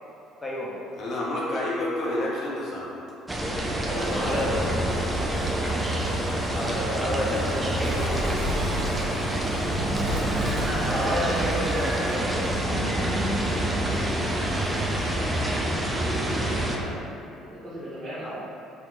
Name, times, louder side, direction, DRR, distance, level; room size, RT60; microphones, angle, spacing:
voice 1, 0.4-0.7 4.2-4.6 6.5-7.4 7.8-8.4 10.9-13.1 18.2-18.4, equal, 10° left, -5 dB, 0.7 m, -31 dB
voice 2, 1.0-3.0, left 1 dB, 50° left, -5 dB, 0.5 m, -29 dB
sound 1, 3.3-16.8, right 1 dB, 15° right, 0.4 m, -27 dB
voice 3, 3.8-4.6 16.6-17.0 17.3-18.3, equal, 35° right, -12 dB, 1.0 m, -34 dB
sound 2, 3.9-12.1, equal, 80° left, 0.9 m, -45 dB
Bird, 7.0-15.3, equal, 60° right, 0.6 m, -34 dB
2.9 x 2.0 x 3.7 m, 2.8 s
figure-of-eight pair, 55°, 0 cm